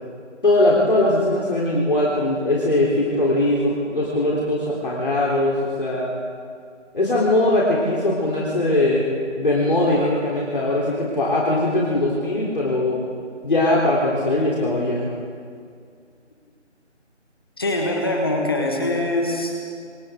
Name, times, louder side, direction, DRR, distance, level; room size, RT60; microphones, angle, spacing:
voice 1, 0.4-6.1 6.9-9.1 9.4-13.0 13.4-15.2, left 1 dB, 45° left, -6 dB, 3.9 m, -20 dB
voice 2, 17.6-19.7, left 1 dB, 20° left, 0 dB, 1.8 m, -23 dB
28.5 x 26.5 x 3.9 m, 2.2 s
figure-of-eight pair, 175°, 36 cm